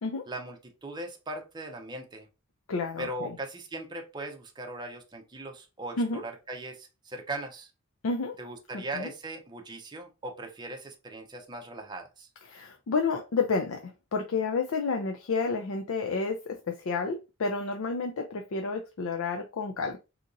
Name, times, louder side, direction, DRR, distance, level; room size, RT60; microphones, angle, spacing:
voice 1, 0.3-2.3 3.0-7.7 8.4-12.3, right 2 dB, 20° right, 0.6 m, -39 dB
voice 2, 2.7-3.4 6.0-6.2 8.0-8.4 8.9-9.1 12.4-20.0, left 4 dB, 80° left, 0.5 m, -30 dB
2.8 x 2.6 x 3.8 m
head